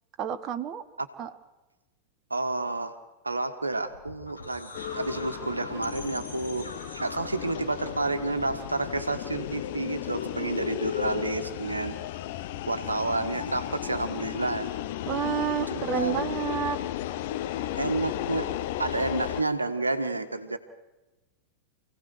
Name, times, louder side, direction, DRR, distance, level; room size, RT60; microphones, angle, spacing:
voice 1, 0.2-0.8 1.2-1.3 15.1-16.8, right 8 dB, 35° right, 9 dB, 1.1 m, -29 dB
voice 2, 2.3-3.0 3.2-6.7 7.0-12.0 12.7-14.7 15.7-16.4 17.8-18.5 18.8-20.6, right 2 dB, 80° right, 9 dB, 1.5 m, -30 dB
sound 1, 3.8-9.7, left 2 dB, 80° left, 7.5 m, -44 dB
sound 2, 4.7-19.4, left 13 dB, 50° left, 0.8 m, -34 dB
28.0 x 17.0 x 6.5 m, 1.1 s
figure-of-eight pair, 90°, 0 cm